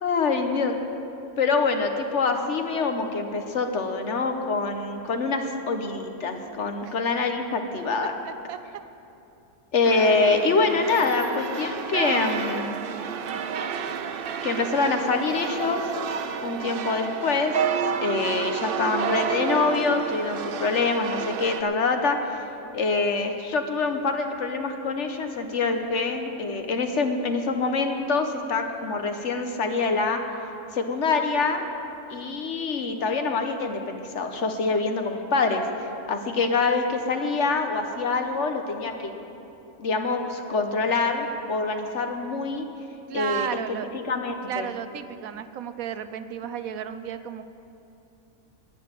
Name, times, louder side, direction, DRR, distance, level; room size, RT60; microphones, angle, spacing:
voice 1, 0.0-0.8 1.4-8.1 9.7-12.8 14.4-15.8 16.4-17.5 18.0-22.4 22.7-30.2 30.7-31.6 32.1-39.1 39.8-42.7 43.1-43.5 43.9-44.7, left 4 dB, 55° left, 5 dB, 1.3 m, -25 dB
voice 2, 8.2-8.6 43.1-43.9 44.4-47.4, right 9 dB, 75° right, 11 dB, 1.1 m, -33 dB
sound 1, 9.8-21.6, right 7 dB, 55° right, 0.6 m, -30 dB
11.0 x 10.0 x 9.1 m, 2.8 s
omnidirectional pair, 1.5 m